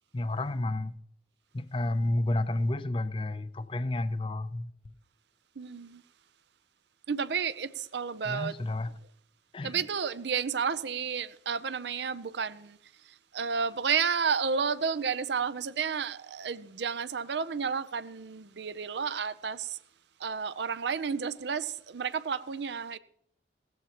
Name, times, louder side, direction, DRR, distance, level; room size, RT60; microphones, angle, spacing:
voice 1, 0.1-1.0 1.5-4.9 8.2-9.0 9.5-9.8, left 1 dB, 30° left, 0.5 m, -31 dB
voice 2, 5.6-6.0 7.1-8.5 9.6-12.8 13.3-19.8 20.2-23.0, right 6 dB, 75° right, 0.6 m, -31 dB
17.5 x 14.5 x 2.9 m
head